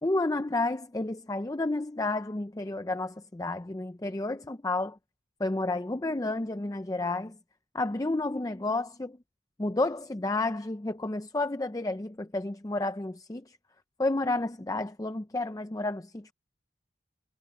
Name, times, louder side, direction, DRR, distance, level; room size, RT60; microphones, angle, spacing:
voice 1, 0.0-5.0 5.4-7.4 7.7-9.2 9.6-13.6 14.0-16.3, left 2 dB, 20° left, 0.5 m, -31 dB
head